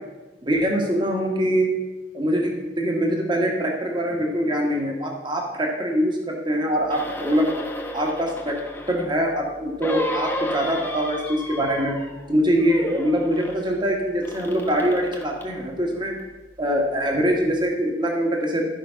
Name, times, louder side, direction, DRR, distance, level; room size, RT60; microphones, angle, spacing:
voice 1, 0.4-1.7 2.1-7.5 7.9-8.6 8.9-12.0 12.3-16.2 16.6-18.6, equal, 25° right, 0 dB, 1.5 m, -23 dB
sound 1, 6.9-9.2 9.8-12.3 12.6-13.6 14.2-15.5 16.2-16.3, equal, 10° left, 1.2 m, -33 dB
13.5 x 5.1 x 5.8 m, 1.2 s
head